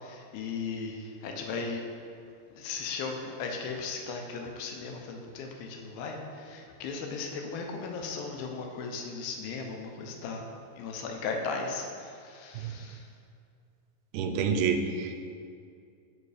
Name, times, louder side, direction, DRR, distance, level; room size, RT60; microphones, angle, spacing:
voice 1, 0.1-1.8 2.6-6.2 6.5-10.4 10.8-11.9 12.3-12.9, left 4 dB, 80° left, 2 dB, 2.5 m, -36 dB
voice 2, 14.1-15.3, right 5 dB, 85° right, 6 dB, 2.5 m, -28 dB
5.6 x 4.8 x 4.8 m, 2.4 s
omnidirectional pair, 4.4 m